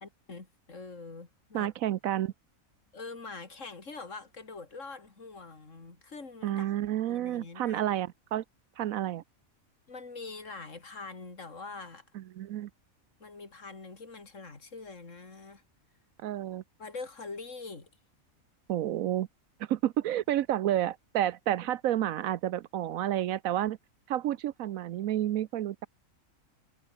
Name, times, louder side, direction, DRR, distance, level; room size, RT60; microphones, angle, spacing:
voice 1, 0.0-1.7 2.9-6.7 7.1-7.8 9.9-12.1 13.2-15.6 16.8-17.9, left 3 dB, 60° left, 3.6 m, -44 dB
voice 2, 1.5-2.3 6.4-8.4 8.8-9.2 12.1-12.7 16.2-16.6 18.7-19.3 19.6-23.8 24.1-25.9, right 12 dB, 80° right, 1.1 m, -30 dB
omnidirectional pair, 1.4 m